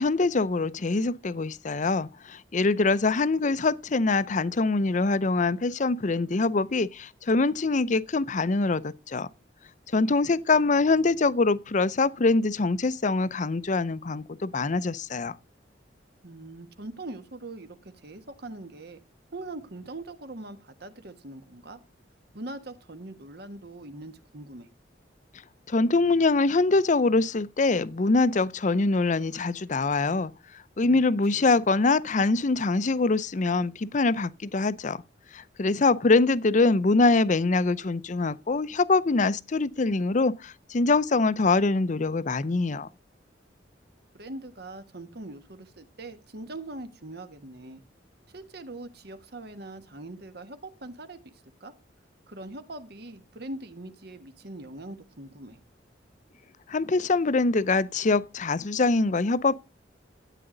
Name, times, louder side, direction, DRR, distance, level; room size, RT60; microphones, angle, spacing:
voice 1, 0.0-9.3 9.9-15.4 25.7-30.3 30.8-35.0 35.3-42.9 56.7-59.6, left 3 dB, 40° left, 0.6 m, -24 dB
voice 2, 9.9-11.0 16.2-17.7 18.0-19.0 19.3-21.8 22.3-24.7 30.8-31.0 31.3-31.6 44.1-47.8 48.3-51.3 51.6-51.7 52.3-55.6, right 2 dB, 60° right, 1.4 m, -42 dB
13.5 x 9.1 x 3.9 m
head